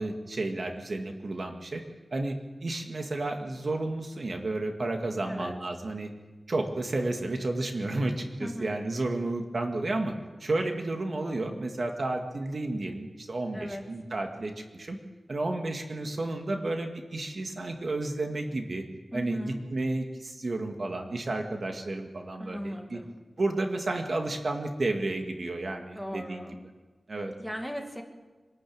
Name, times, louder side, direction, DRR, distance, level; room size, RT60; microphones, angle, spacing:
voice 1, 0.0-1.8 2.1-6.1 6.5-10.1 10.4-15.0 15.3-18.8 19.1-23.0 23.4-26.6 27.1-27.3, right 2 dB, 55° right, 4 dB, 2.0 m, -32 dB
voice 2, 5.3-5.6 8.4-8.7 13.5-13.9 19.1-19.6 22.4-23.2 25.9-26.6 27.4-28.0, equal, ahead, 3 dB, 2.3 m, -38 dB
25.0 x 12.5 x 8.8 m, 1.3 s
wide cardioid pair, 105°, 0 cm